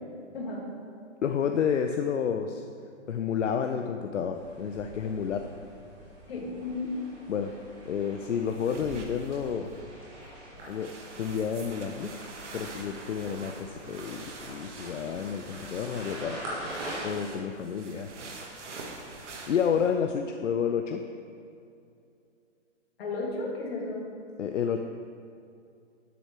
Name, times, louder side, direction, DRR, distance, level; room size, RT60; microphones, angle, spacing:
voice 1, 0.3-0.7 6.3-7.0 23.0-24.0, left 2 dB, 55° left, -2 dB, 2.4 m, -33 dB
voice 2, 1.2-2.6 3.1-5.5 7.3-7.5 7.8-9.7 10.7-12.2 12.5-16.4 17.0-18.1 19.5-21.0 24.4-24.8, left 7 dB, 75° left, 6 dB, 0.7 m, -30 dB
sound 1, 4.3-17.1, right 1 dB, 5° right, 0.3 m, -44 dB
sound 2, 8.5-9.8 10.2-10.3 10.7-19.9, right 3 dB, 70° right, 1.7 m, -45 dB
11.5 x 7.8 x 3.3 m, 2.5 s
hypercardioid pair, 140°, 37 cm